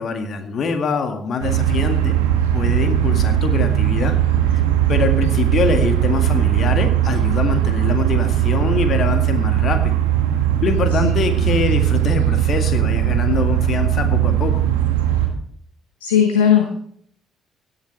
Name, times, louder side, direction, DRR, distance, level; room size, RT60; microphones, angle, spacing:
voice 1, 0.0-2.2 2.5-4.1 4.9-10.0 10.6-14.6, left 5 dB, 50° left, 6 dB, 2.0 m, -24 dB
sound 1, 1.4-15.3, right 11 dB, 75° right, 1.6 m, -18 dB
voice 2, 16.0-16.8, left 8 dB, 80° left, 4 dB, 1.3 m, -17 dB
17.0 x 11.5 x 3.3 m, 0.64 s
figure-of-eight pair, 45°, 0 cm